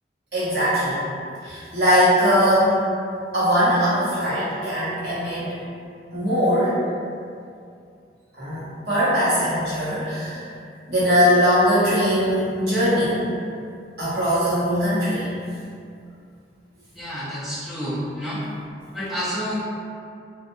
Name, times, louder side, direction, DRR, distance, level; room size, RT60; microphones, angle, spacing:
voice 1, 0.3-1.0 1.4-2.8 3.3-5.5 6.1-6.7 8.4-10.4 10.9-13.1 14.0-15.3, equal, 60° right, -10 dB, 1.0 m, -20 dB
voice 2, 17.0-18.4 18.9-19.6, equal, ahead, -8 dB, 0.3 m, -29 dB
2.7 x 2.3 x 2.6 m, 2.4 s
head